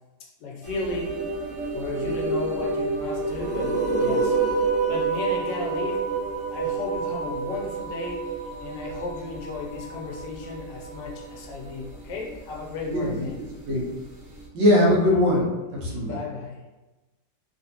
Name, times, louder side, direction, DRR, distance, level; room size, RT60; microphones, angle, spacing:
voice 1, 0.2-1.2 1.7-4.6 4.9-6.1 6.5-8.3 8.6-13.4 15.8-16.7, left 4 dB, 80° left, 0 dB, 1.3 m, -34 dB
sound 1, 0.6-14.4, right 4 dB, 45° right, 0.6 m, -29 dB
voice 2, 12.9-13.3 13.6-13.8 14.5-16.2, left 1 dB, 85° right, -4 dB, 1.6 m, -21 dB
3.3 x 3.0 x 2.8 m, 1.1 s
omnidirectional pair, 1.9 m